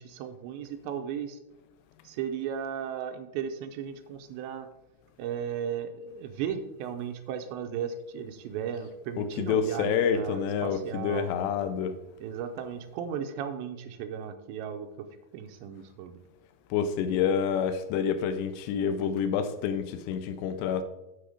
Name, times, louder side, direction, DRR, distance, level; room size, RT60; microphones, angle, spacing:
voice 1, 0.0-1.4 2.1-4.7 5.2-11.3 12.2-14.9 15.3-16.2, right 8 dB, 80° right, 2.9 m, -36 dB
voice 2, 9.2-12.0 16.7-20.8, left 7 dB, 80° left, 2.7 m, -28 dB
7.7 x 6.6 x 5.0 m
omnidirectional pair, 5.2 m